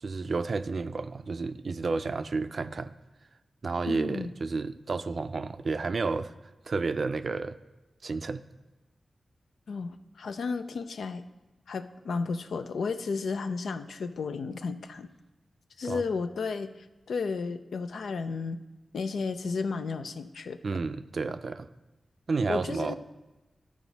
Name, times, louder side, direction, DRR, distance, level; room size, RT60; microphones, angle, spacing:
voice 1, 0.0-2.9 3.6-6.3 6.7-7.6 8.0-8.4 15.8-16.0 20.6-21.7 22.3-22.9, right 4 dB, 60° right, 11 dB, 0.4 m, -31 dB
voice 2, 3.9-4.3 9.7-11.2 11.7-15.1 15.8-16.7 17.1-18.6 18.9-20.6 22.5-22.9, left 4 dB, 85° left, 9 dB, 0.4 m, -33 dB
12.5 x 4.9 x 4.0 m, 1.1 s
cardioid pair, 50°, 0 cm